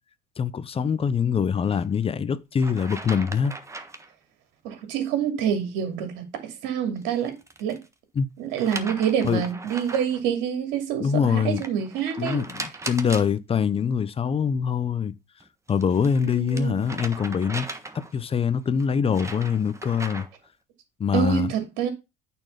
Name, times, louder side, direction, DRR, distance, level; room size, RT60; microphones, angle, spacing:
voice 1, 0.4-3.5 8.1-8.3 9.2-9.4 11.0-11.6 12.2-15.1 15.7-17.7 17.9-20.3 21.0-21.5, left 7 dB, 25° left, 0.8 m, -24 dB
sound 1, 1.6-1.8 2.6-4.1 7.0-7.9 8.6-10.2 11.6-13.3 15.4-18.2 18.8-20.5, right 2 dB, 15° right, 1.4 m, -38 dB
voice 2, 4.6-7.3 7.6-7.8 8.4-12.4 16.2-16.8 21.1-21.9, right 8 dB, 65° right, 2.7 m, -27 dB
8.9 x 4.6 x 5.4 m
hypercardioid pair, 80°, 21 cm